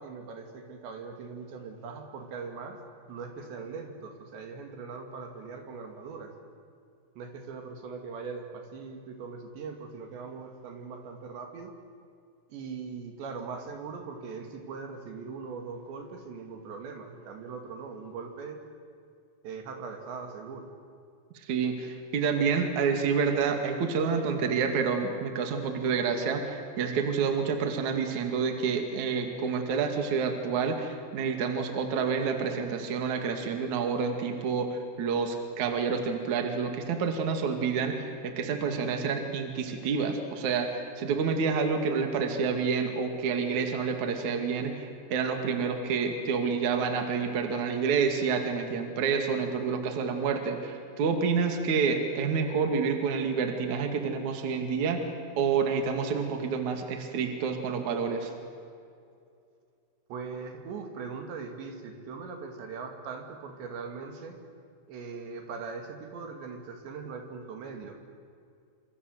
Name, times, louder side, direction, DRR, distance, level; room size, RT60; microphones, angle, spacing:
voice 1, 0.0-2.8 3.1-6.3 7.2-11.7 12.5-18.6 19.4-20.7 60.1-64.4 64.9-68.1, right 5 dB, 75° right, 4 dB, 4.6 m, -40 dB
voice 2, 21.5-55.0 55.4-58.3, right 5 dB, 50° right, 5 dB, 3.1 m, -28 dB
27.5 x 26.5 x 8.1 m, 2.4 s
omnidirectional pair, 5.2 m